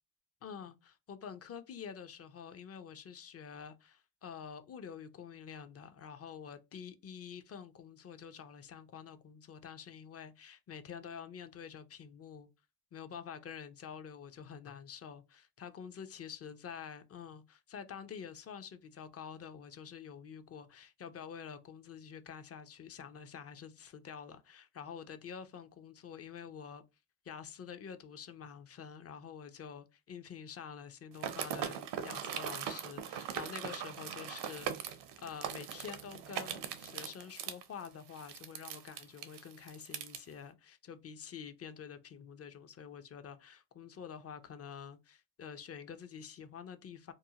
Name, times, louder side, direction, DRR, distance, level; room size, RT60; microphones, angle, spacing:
voice 1, 0.4-12.5 12.9-26.8 27.3-31.8 32.0-34.7 35.2-47.1, left 7 dB, 35° left, 0.5 m, -48 dB
sound 1, 31.1-40.2, right 9 dB, 70° right, 0.6 m, -40 dB
2.6 x 2.0 x 2.8 m
supercardioid pair, 60°, 43 cm